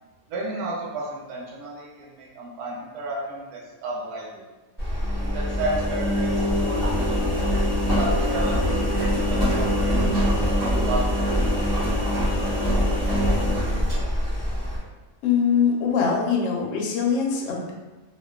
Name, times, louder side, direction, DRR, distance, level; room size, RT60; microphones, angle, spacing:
voice 1, 0.3-4.4 5.2-7.6 8.0-10.1 10.9-11.4, right 2 dB, 80° right, -5 dB, 1.1 m, -33 dB
Engine, 4.8-14.8, equal, 20° right, 0.7 m, -23 dB
voice 2, 15.2-17.7, left 6 dB, 70° left, -1 dB, 0.8 m, -22 dB
2.9 x 2.3 x 2.2 m, 1.2 s
omnidirectional pair, 1.6 m